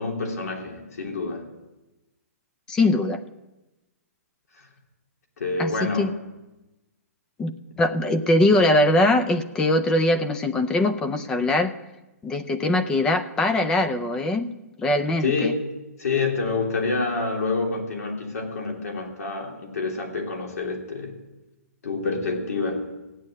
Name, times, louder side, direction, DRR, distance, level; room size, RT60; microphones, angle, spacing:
voice 1, 0.0-1.5 5.4-6.3 15.2-15.6 16.0-21.2 21.8-22.9, left 3 dB, 75° left, 2 dB, 3.2 m, -27 dB
voice 2, 2.7-3.2 5.6-6.1 7.4-11.7 12.2-14.5 14.8-15.6, left 1 dB, 10° left, 10 dB, 0.4 m, -22 dB
15.0 x 9.5 x 7.6 m, 1.0 s
hypercardioid pair, 165°, 9 cm